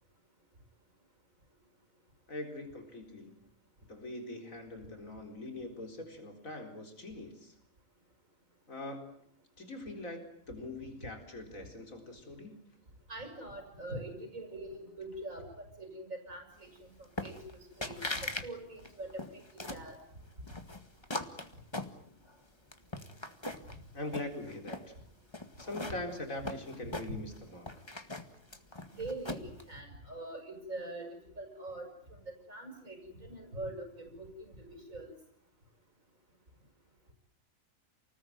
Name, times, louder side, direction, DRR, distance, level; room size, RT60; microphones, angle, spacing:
voice 1, 2.3-3.4 3.9-7.5 8.7-9.0 9.6-12.6 23.9-24.9 25.6-27.7, left 2 dB, 90° left, 4 dB, 4.6 m, -42 dB
voice 2, 13.1-17.4 17.8-20.0 27.1-27.2 28.9-31.1 31.4-35.1, right 1 dB, 85° right, 4 dB, 6.5 m, -43 dB
sound 1, 17.2-17.5 17.8-18.5 18.8-19.9 20.5-22.3 22.7-23.8 24.1-24.9 25.3-27.4 27.7-29.6, left 2 dB, 20° left, 1.9 m, -40 dB
29.0 x 19.5 x 9.3 m, 0.68 s
omnidirectional pair, 1.4 m